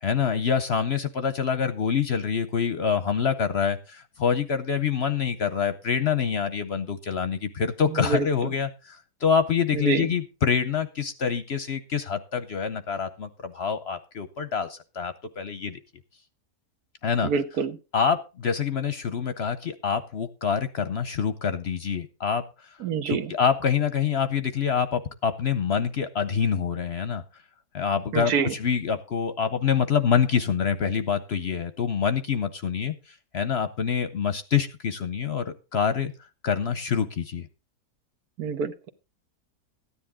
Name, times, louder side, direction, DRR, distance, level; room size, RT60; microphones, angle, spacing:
voice 1, 0.0-15.8 17.0-17.3 17.9-22.4 23.1-27.2 27.7-32.9 33.3-36.1 36.4-37.5, left 7 dB, 55° left, 11 dB, 0.8 m, -26 dB
voice 2, 7.9-8.3 9.7-10.1 17.2-17.8 22.8-23.3 28.1-28.5 38.4-38.9, right 6 dB, 75° right, 9 dB, 1.5 m, -26 dB
14.0 x 10.0 x 3.6 m, 0.30 s
omnidirectional pair, 1.6 m